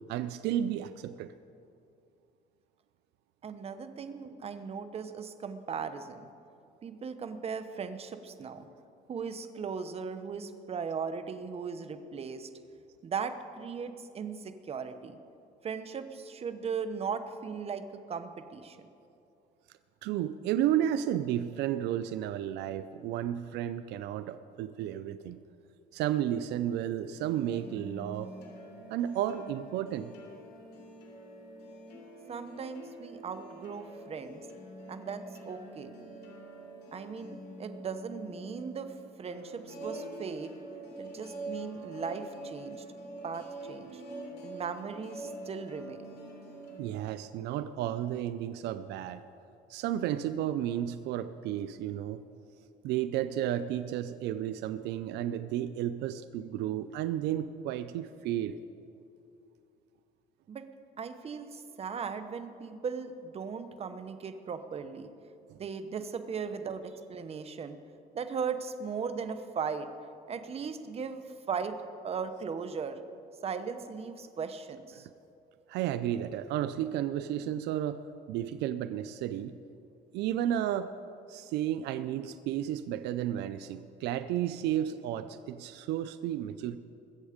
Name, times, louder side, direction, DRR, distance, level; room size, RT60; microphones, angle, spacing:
voice 1, 0.1-1.3 20.0-25.4 25.9-28.3 28.9-30.1 46.8-49.2 49.7-52.2 52.8-58.6 65.5-65.6 75.7-78.0 78.3-79.5 80.1-80.9 81.3-86.8, right 11 dB, 85° right, 12 dB, 0.5 m, -32 dB
voice 2, 3.4-6.3 6.8-8.7 9.1-12.5 13.0-15.2 15.6-18.8 32.3-34.4 34.9-35.9 36.9-38.9 39.2-40.5 41.0-42.8 43.2-44.0 44.4-46.0 60.5-60.6 61.0-65.1 65.6-67.8 68.1-69.9 70.3-71.8 72.0-73.0 73.4-75.1, right 6 dB, 35° right, 9 dB, 0.9 m, -38 dB
sound 1, 27.2-46.8, right 1 dB, 75° left, 2.8 m, -45 dB
21.0 x 8.0 x 5.0 m, 2.6 s
cardioid pair, 110°, 17 cm